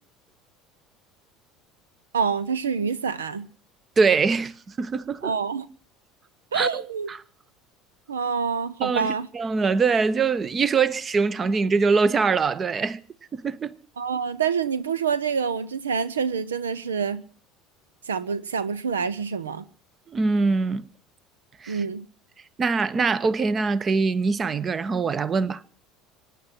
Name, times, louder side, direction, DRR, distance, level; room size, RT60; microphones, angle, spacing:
voice 1, 2.1-3.5 5.2-5.7 6.5-7.1 8.1-9.3 14.0-17.2 18.1-19.6 21.7-22.1, right 6 dB, 80° right, 0.7 m, -27 dB
voice 2, 4.0-5.3 6.5-7.2 8.8-13.0 13.3-13.7 20.1-20.8 21.6-21.8 22.6-25.6, right 4 dB, 30° right, 1.0 m, -23 dB
24.5 x 10.0 x 5.9 m
hypercardioid pair, 70°, 0 cm